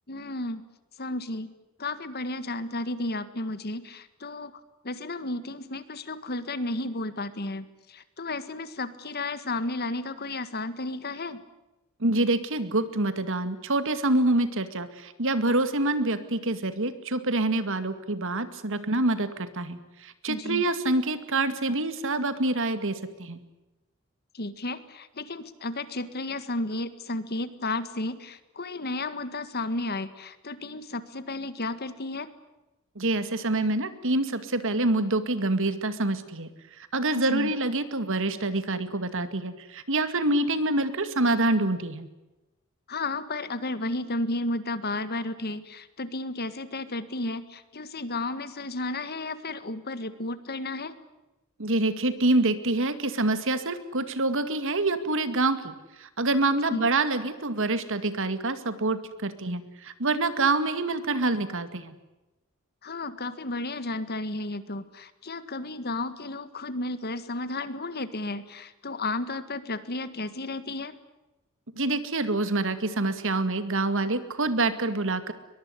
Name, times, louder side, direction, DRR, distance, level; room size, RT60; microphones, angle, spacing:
voice 1, 0.1-0.6 1.0-1.5 1.8-4.5 4.8-11.4 20.3-20.6 24.3-32.3 37.1-37.5 42.9-50.9 56.7-56.9 62.8-71.0, left 2 dB, 45° left, 13 dB, 1.8 m, -33 dB
voice 2, 12.0-23.4 33.0-36.5 36.8-42.1 51.6-55.7 56.0-61.9 71.8-75.3, right 2 dB, 60° right, 11 dB, 2.2 m, -26 dB
22.5 x 22.5 x 9.9 m, 1.0 s
head